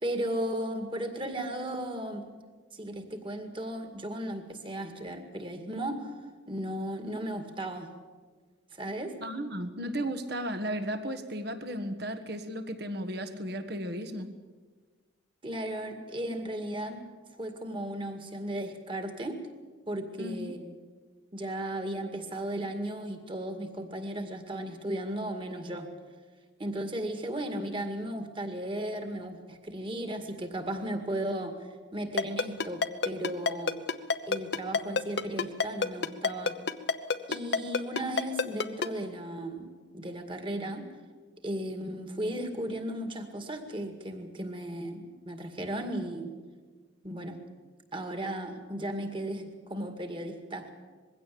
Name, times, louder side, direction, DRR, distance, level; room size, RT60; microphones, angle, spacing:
voice 1, 0.0-2.2 2.7-6.1 6.5-7.9 8.7-9.2 15.4-17.1 17.4-19.4 19.9-20.7 21.3-25.9 26.6-31.6 31.9-33.8 34.3-36.6 37.3-39.7 39.9-40.9 41.4-46.3 47.0-47.4 47.9-50.7, right 1 dB, 25° right, 6 dB, 2.1 m, -35 dB
voice 2, 9.2-14.3 20.2-20.5, equal, 55° right, 9 dB, 1.5 m, -35 dB
Ringtone, 32.2-38.9, left 4 dB, 55° left, 0.9 m, -27 dB
21.5 x 16.5 x 8.6 m, 1.4 s
head